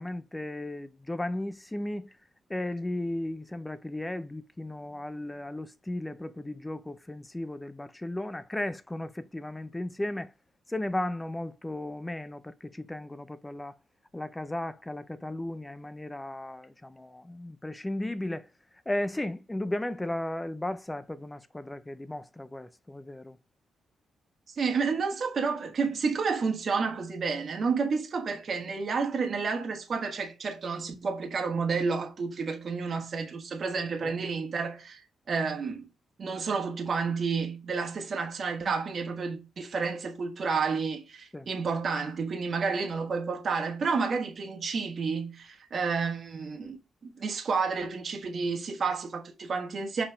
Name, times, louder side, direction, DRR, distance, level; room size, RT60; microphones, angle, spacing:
voice 1, 0.0-2.2 2.5-10.3 10.7-13.8 14.1-18.5 18.9-23.4 34.0-34.1 41.3-41.5, left 1 dB, 10° left, 0.4 m, -35 dB
voice 2, 24.6-35.0 35.3-35.9 36.2-46.8 47.0-50.0, right 5 dB, 50° right, 1.4 m, -30 dB
5.8 x 4.2 x 5.1 m
cardioid pair, 95°, 0 cm